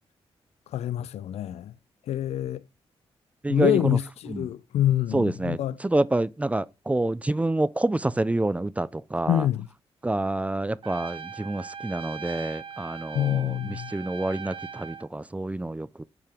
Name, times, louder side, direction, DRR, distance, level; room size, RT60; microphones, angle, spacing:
voice 1, 0.7-1.7 2.1-2.6 3.5-5.7 9.3-9.7 13.1-13.9, left 12 dB, 80° left, 0.4 m, -26 dB
voice 2, 3.4-4.0 4.3-4.5 5.1-9.5 10.0-16.0, right 2 dB, 15° right, 0.4 m, -27 dB
Trumpet, 10.8-15.1, right 6 dB, 55° right, 0.7 m, -40 dB
7.5 x 4.8 x 3.5 m
cardioid pair, 85°, 11 cm